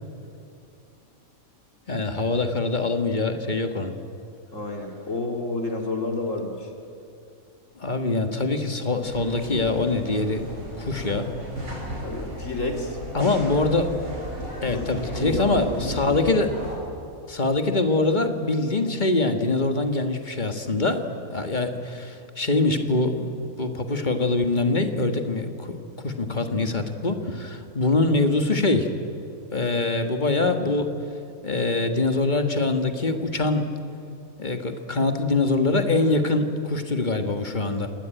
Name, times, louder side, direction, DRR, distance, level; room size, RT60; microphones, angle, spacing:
voice 1, 1.9-3.9 7.8-10.5 10.8-11.3 13.1-14.0 14.6-16.5 17.3-21.0 21.3-25.8 26.0-28.9 29.5-30.9 31.4-33.7 34.4-37.9, left 2 dB, 35° left, 6 dB, 1.8 m, -24 dB
voice 2, 4.5-6.7 12.0-13.0 14.6-16.2, left 2 dB, 65° left, 2 dB, 2.8 m, -30 dB
sound 1, 9.0-16.8, equal, 85° right, 7.1 m, -36 dB
27.5 x 20.0 x 9.2 m, 2.6 s
omnidirectional pair, 1.5 m